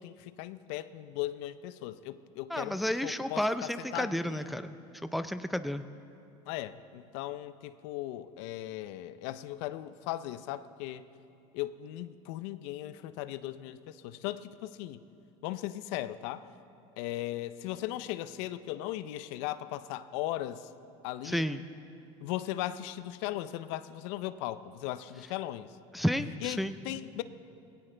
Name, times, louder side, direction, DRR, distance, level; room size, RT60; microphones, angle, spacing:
voice 1, 0.0-4.6 6.5-11.1 11.5-15.0 15.4-16.5 17.0-20.7 21.0-21.5 22.2-25.7 26.4-27.2, left 14 dB, 75° left, 14 dB, 0.6 m, -38 dB
voice 2, 2.5-4.7 5.0-5.9 21.2-21.6 25.9-26.8, equal, ahead, 10 dB, 0.5 m, -31 dB
18.0 x 17.5 x 3.4 m, 2.6 s
supercardioid pair, 90°, 15 cm